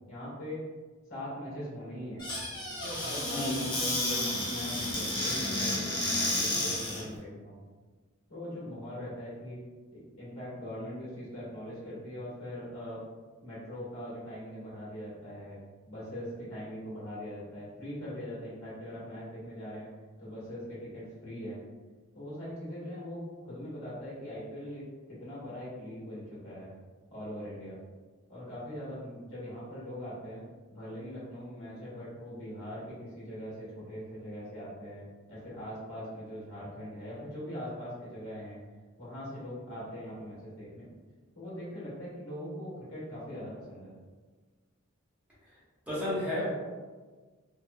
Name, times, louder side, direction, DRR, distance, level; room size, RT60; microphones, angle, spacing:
voice 1, 0.1-0.6 1.1-2.2 2.8-7.6 8.3-9.6 9.9-13.0 13.4-19.9 20.2-21.6 22.1-26.8 27.1-27.8 28.3-30.4 30.7-38.6 39.0-40.9 41.3-43.9, equal, 80° left, -8 dB, 1.3 m, -41 dB
Squeak / Cupboard open or close, 2.2-7.1, left 1 dB, 20° left, 0.6 m, -31 dB
voice 2, 45.9-46.5, left 1 dB, 5° right, -10 dB, 0.8 m, -31 dB
3.0 x 2.0 x 2.2 m, 1.4 s
head